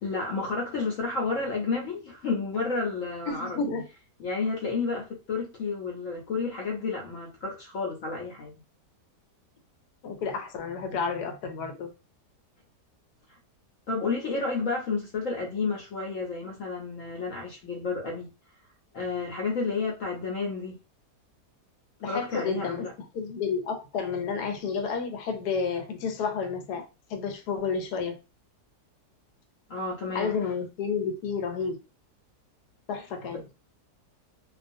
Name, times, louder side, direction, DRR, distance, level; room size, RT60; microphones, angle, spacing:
voice 1, 0.0-3.6 4.2-8.5 13.3-13.4 13.9-18.3 18.9-20.8 22.1-22.9 29.7-30.3 33.3-33.4, left 4 dB, 65° left, 0.9 m, -31 dB
voice 2, 3.3-3.8 10.0-11.9 22.0-22.9 23.1-28.2 30.1-31.8 32.9-33.4, left 5 dB, 80° left, 1.2 m, -31 dB
2.4 x 2.3 x 2.6 m
omnidirectional pair, 1.7 m